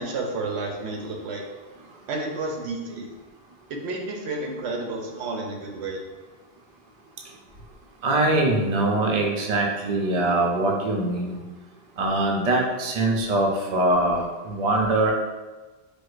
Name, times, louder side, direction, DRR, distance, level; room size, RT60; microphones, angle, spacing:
voice 1, 0.0-1.4 2.1-3.1 3.7-6.0, right 2 dB, 90° right, 2 dB, 0.9 m, -31 dB
voice 2, 8.0-11.4 12.0-15.1, right 2 dB, 50° right, 0 dB, 0.6 m, -23 dB
4.5 x 2.2 x 2.4 m, 1.2 s
omnidirectional pair, 1.1 m